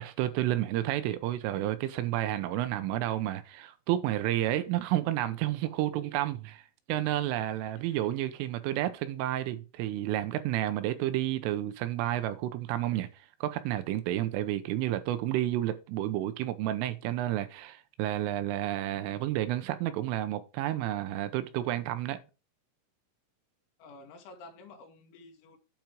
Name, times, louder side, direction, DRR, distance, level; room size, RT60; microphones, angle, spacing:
voice 1, 0.0-6.6 6.9-13.1 13.4-22.2, right 13 dB, 85° right, 3.2 m, -31 dB
voice 2, 23.8-25.6, left 3 dB, 70° left, 3.9 m, -51 dB
8.8 x 5.8 x 5.2 m
omnidirectional pair, 5.9 m